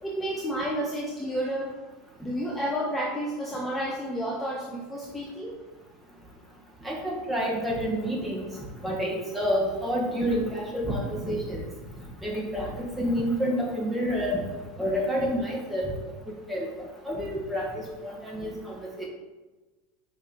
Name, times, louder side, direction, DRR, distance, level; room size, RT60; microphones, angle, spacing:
voice 1, 0.0-1.7 2.2-5.6, equal, 10° left, -3 dB, 1.0 m, -31 dB
voice 2, 6.8-11.6 12.2-14.4 14.8-15.9 16.5-16.7 17.0-19.1, equal, 10° right, -3 dB, 1.9 m, -29 dB
5.8 x 3.6 x 4.5 m, 1.2 s
hypercardioid pair, 90°, 0 cm